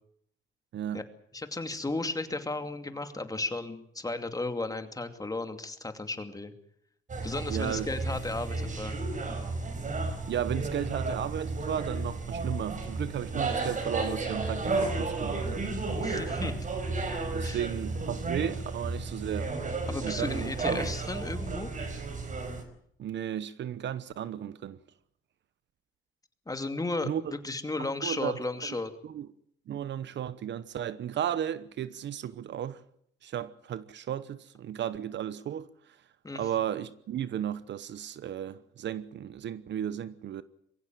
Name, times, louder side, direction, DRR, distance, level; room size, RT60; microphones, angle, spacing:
voice 1, 0.7-1.0 7.5-7.9 10.3-15.7 17.3-19.6 20.0-20.9 23.0-24.8 27.0-27.4 27.8-28.4 29.0-29.3 29.7-32.8 33.2-35.7 36.3-40.4, right 10 dB, 65° right, 1.0 m, -34 dB
voice 2, 1.3-6.5 7.2-9.0 16.0-16.5 17.4-17.6 19.9-21.7 26.5-28.9 36.2-36.4, left 2 dB, 20° left, 2.6 m, -34 dB
sound 1, 7.1-22.6, right 3 dB, 40° right, 4.7 m, -33 dB
23.0 x 15.5 x 9.2 m
cardioid pair, 90°, 20 cm